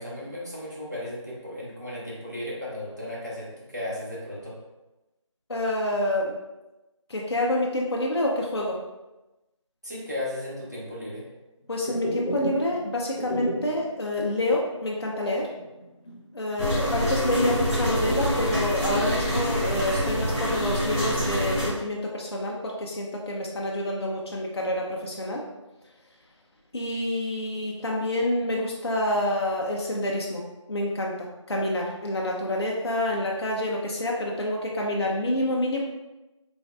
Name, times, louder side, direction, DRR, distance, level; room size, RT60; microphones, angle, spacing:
voice 1, 0.0-4.5 9.8-11.2, left 1 dB, 35° right, -6 dB, 0.6 m, -35 dB
voice 2, 5.5-6.3 7.1-8.8 11.7-15.5 16.3-25.4 26.7-30.4 30.7-35.8, left 1 dB, 55° left, -2 dB, 0.4 m, -27 dB
sound 1, 11.9-12.8 13.0-13.9 14.3-14.4 14.8-14.9 15.4-16.8 17.1-17.8, equal, 80° left, 0.7 m, -33 dB
sound 2, 16.6-21.7, equal, 15° right, 1.3 m, -26 dB
3.3 x 2.0 x 2.4 m, 1.0 s
figure-of-eight pair, 175°, 16 cm